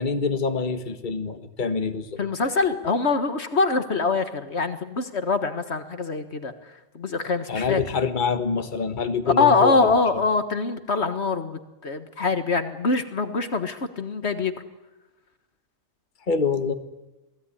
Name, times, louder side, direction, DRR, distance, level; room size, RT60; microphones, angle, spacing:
voice 1, 0.0-2.2 7.5-9.9 16.3-16.7, left 5 dB, 40° left, 8 dB, 1.6 m, -25 dB
voice 2, 2.2-6.5 7.0-7.8 9.3-14.5, left 4 dB, 65° left, 9 dB, 1.8 m, -24 dB
27.5 x 19.0 x 10.0 m, 1.0 s
omnidirectional pair, 1.2 m